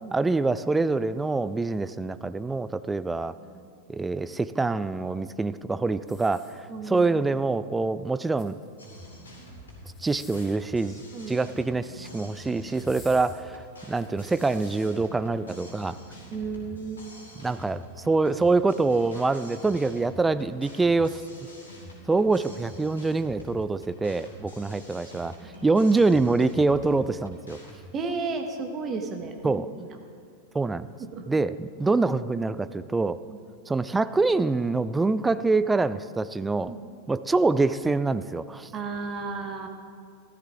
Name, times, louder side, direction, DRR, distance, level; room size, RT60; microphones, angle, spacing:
voice 1, 0.1-3.3 3.9-8.6 10.0-16.0 17.4-21.2 22.1-27.6 29.4-29.7 30.5-30.9 31.3-33.2 33.7-36.7 37.1-38.7, right 3 dB, 10° right, 14 dB, 0.4 m, -25 dB
sound 1, 6.0-7.0 8.1-8.9 9.8-10.7 11.8-12.2 12.7-14.9 15.5-15.6, left 3 dB, 20° left, 1.9 m, -53 dB
voice 2, 6.7-7.2 11.1-11.4 16.3-17.2 20.4-20.6 25.5-25.8 27.9-30.0 31.0-31.3 33.3-33.4 36.7-36.9 38.7-39.7, right 4 dB, 25° right, 4 dB, 1.4 m, -34 dB
sound 2, 8.8-27.8, equal, 70° left, 2.8 m, -46 dB
14.5 x 13.0 x 3.6 m, 2.3 s
figure-of-eight pair, 90°, 0 cm